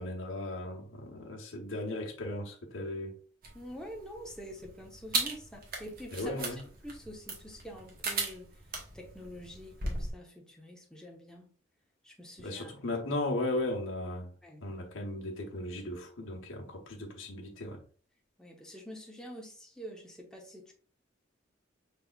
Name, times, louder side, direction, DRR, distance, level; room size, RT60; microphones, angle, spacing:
voice 1, 0.0-3.2 6.1-6.6 12.4-14.3 14.6-17.8, left 1 dB, 85° left, 0.9 m, -36 dB
sound 1, 3.4-10.1, right 3 dB, 50° right, 1.0 m, -38 dB
voice 2, 3.5-6.5 6.8-11.5 12.0-12.8 14.4-14.7 18.4-20.7, equal, 5° left, 0.8 m, -47 dB
5.4 x 3.4 x 2.4 m
head